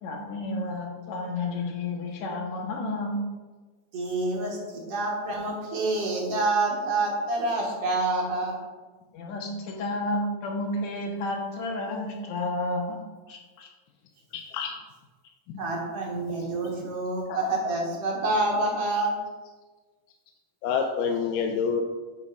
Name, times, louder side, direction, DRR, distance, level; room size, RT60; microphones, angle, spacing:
voice 1, 0.0-3.2 9.1-13.0 13.3-13.7, left 2 dB, 70° left, 1 dB, 2.2 m, -31 dB
voice 2, 3.9-8.5 15.6-19.1, right 2 dB, 55° right, -3 dB, 2.3 m, -27 dB
voice 3, 14.3-14.7 15.5-15.6 16.4-16.9 17.3-17.5 20.6-21.8, left 6 dB, 90° left, 3 dB, 2.2 m, -28 dB
9.4 x 8.3 x 2.4 m, 1.3 s
omnidirectional pair, 3.7 m